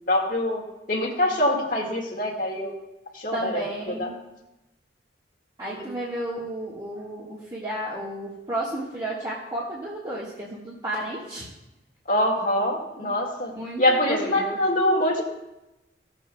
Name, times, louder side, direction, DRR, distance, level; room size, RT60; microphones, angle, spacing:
voice 1, 0.1-0.6 0.9-2.7 3.1-4.1 5.7-5.9 12.1-13.5 13.8-15.2, left 1 dB, 50° left, 0 dB, 1.8 m, -24 dB
voice 2, 3.3-4.1 5.6-11.5 13.0-13.1 13.5-14.6, right 1 dB, 25° right, -8 dB, 1.5 m, -32 dB
16.0 x 7.4 x 2.3 m, 0.96 s
head